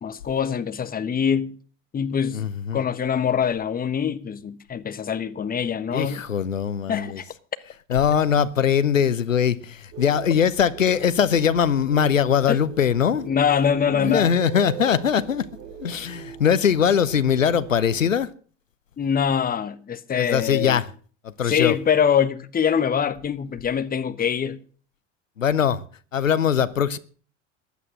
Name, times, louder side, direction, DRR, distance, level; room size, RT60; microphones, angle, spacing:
voice 1, 0.0-1.6 1.9-2.5 2.7-6.3 6.9-7.3 12.5-12.6 13.2-14.3 19.0-20.8 21.4-24.6, left 7 dB, 25° left, 1.3 m, -24 dB
voice 2, 2.3-2.8 5.9-7.2 7.9-13.3 13.9-15.5 15.8-18.3 20.1-20.9 21.4-21.7 25.4-25.8 26.1-27.0, left 8 dB, 85° left, 0.8 m, -21 dB
sound 1, 9.9-18.1, right 9 dB, 60° right, 4.9 m, -41 dB
15.0 x 11.0 x 6.3 m
figure-of-eight pair, 70°, 38 cm